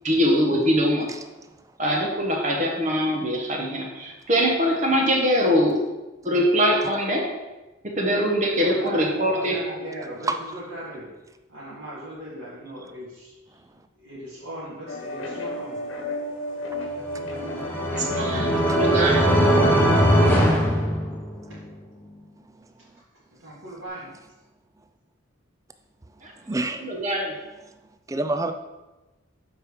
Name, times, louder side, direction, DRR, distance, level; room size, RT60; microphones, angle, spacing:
voice 1, 0.0-1.1 1.8-5.8 6.2-7.3 7.8-9.6 17.9-19.3 26.2-26.3 26.8-27.3, equal, 35° right, 0 dB, 1.2 m, -23 dB
voice 2, 8.6-11.1 11.5-13.6 14.0-15.8 23.4-24.1, right 1 dB, 80° right, -12 dB, 2.8 m, -37 dB
voice 3, 10.3-10.6 18.3-18.8 20.3-20.4 22.6-22.7 26.4-26.9 28.1-28.5, right 2 dB, 15° right, 8 dB, 0.4 m, -29 dB
sound 1, 14.9-20.3, left 1 dB, 80° left, 1.2 m, -32 dB
sound 2, 17.0-21.6, equal, 10° left, 1.0 m, -20 dB
7.5 x 5.0 x 5.0 m, 1.1 s
head